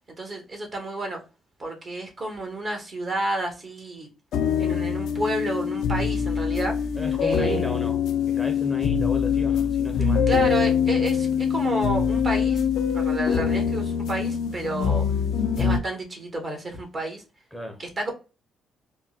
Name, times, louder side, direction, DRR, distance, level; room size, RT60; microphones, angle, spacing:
voice 1, 0.2-1.2 1.6-4.1 4.6-6.8 7.2-7.6 10.3-12.6 12.9-15.1 15.6-17.2 17.8-18.1, right 2 dB, 40° right, 1.2 m, -30 dB
sound 1, 4.3-15.8, left 7 dB, 80° left, 0.5 m, -24 dB
voice 2, 7.0-8.0 8.3-10.2 17.5-17.8, left 1 dB, ahead, 0.7 m, -33 dB
3.6 x 2.2 x 2.4 m
cardioid pair, 90°, 0 cm